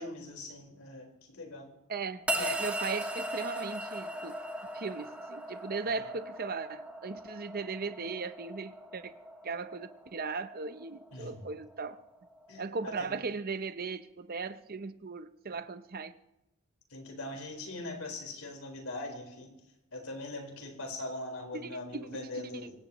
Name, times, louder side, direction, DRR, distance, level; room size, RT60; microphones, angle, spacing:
voice 1, 0.0-1.7 2.3-2.6 6.0-6.1 11.1-11.5 12.5-13.1 16.9-19.6 19.9-22.7, left 2 dB, 75° left, 4.6 m, -41 dB
voice 2, 1.9-4.4 4.7-9.1 9.4-12.0 12.6-16.1 21.5-21.7 22.3-22.4, right 4 dB, 45° right, 0.7 m, -37 dB
sound 1, 2.3-12.6, right 1 dB, 5° right, 2.1 m, -39 dB
24.5 x 17.5 x 3.1 m
head